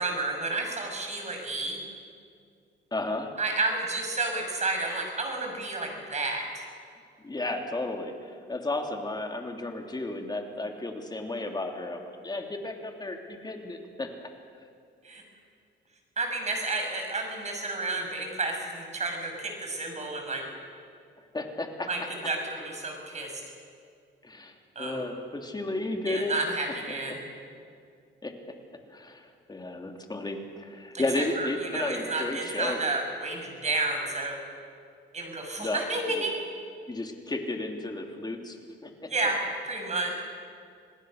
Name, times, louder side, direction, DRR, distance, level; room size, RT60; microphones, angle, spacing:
voice 1, 0.0-1.8 3.4-6.6 15.0-15.2 16.2-20.5 21.8-23.3 24.7-25.0 26.1-27.2 30.9-34.4 35.1-36.4 39.1-39.4 39.6-40.1, right 2 dB, 35° right, 2 dB, 6.2 m, -31 dB
voice 2, 2.9-3.3 7.2-14.3 21.3-21.9 24.2-26.4 27.1-27.2 28.2-28.5 28.9-32.8 35.6-35.8 36.9-38.6 38.8-39.1, left 2 dB, 20° left, 3 dB, 2.9 m, -33 dB
26.5 x 18.5 x 6.5 m, 2.2 s
cardioid pair, 90°, 20 cm